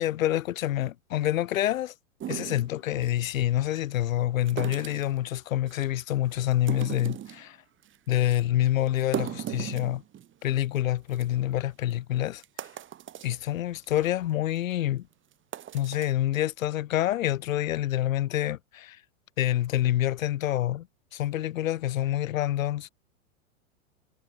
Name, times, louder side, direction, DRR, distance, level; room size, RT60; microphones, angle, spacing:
voice 1, 0.0-1.9 2.3-7.6 8.1-10.0 10.4-12.4 13.2-15.1 15.7-19.0 19.4-20.9 21.1-22.9, left 13 dB, 70° left, 3.6 m, -27 dB
sound 1, 2.2-3.2 4.5-5.2 5.7-6.1 6.5-7.4 7.8-8.0 8.3-8.4 8.9-10.4 10.8-10.9 11.1-11.2 11.9-12.0 12.4-13.4 13.8-14.1 14.6-14.7 15.3-16.1, right 11 dB, 30° right, 7.8 m, -37 dB
hypercardioid pair, 120°, 41 cm